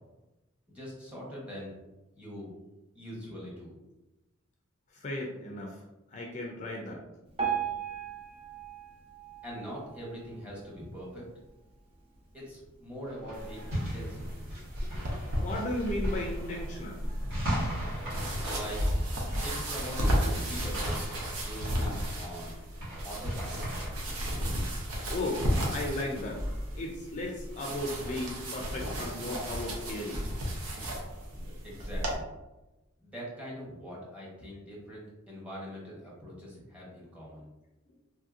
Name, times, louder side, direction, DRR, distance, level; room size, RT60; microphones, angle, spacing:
voice 1, 0.7-1.7 2.1-2.5 2.9-3.7 9.4-11.2 12.3-14.4 18.4-18.9 19.4-21.0 21.4-22.6 23.0-23.7 31.6-32.3 33.0-37.5, equal, 5° right, -6 dB, 0.9 m, -42 dB
voice 2, 4.9-5.8 6.1-7.0 14.9-15.0 15.4-17.1 18.4-18.6 25.0-25.5 25.7-26.4 26.8-30.2, left 1 dB, 35° left, -1 dB, 0.4 m, -35 dB
Piano, 7.4-10.5 11.0-11.2 11.5-11.6 12.3-12.4 12.9-13.0, right 8 dB, 30° right, 0.7 m, -36 dB
sound 1, 13.1-23.9, equal, 65° right, 1.4 m, -38 dB
sound 2, 13.3-32.1, equal, 90° right, 0.7 m, -34 dB
3.1 x 2.6 x 2.4 m, 1.0 s
head